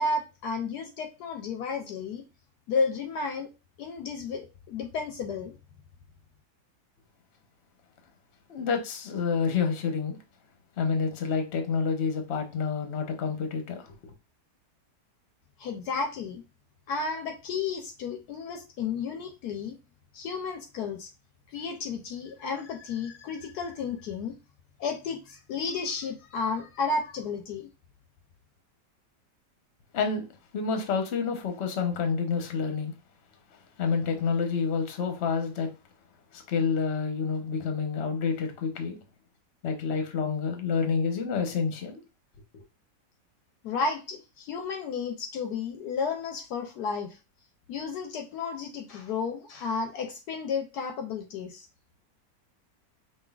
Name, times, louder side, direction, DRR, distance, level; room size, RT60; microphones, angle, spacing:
voice 1, 0.0-2.2 2.7-3.5 3.8-5.5 15.6-16.4 16.9-19.8 20.1-21.1 21.5-24.4 24.8-27.7 43.6-47.2 47.7-51.7, left 4 dB, 70° left, 1.1 m, -32 dB
voice 2, 8.5-10.2 10.8-13.9 29.9-30.3 30.5-32.9 33.8-35.7 36.3-39.0 39.6-42.0, left 5 dB, 50° left, 0.9 m, -28 dB
5.3 x 2.7 x 2.3 m
omnidirectional pair, 1.9 m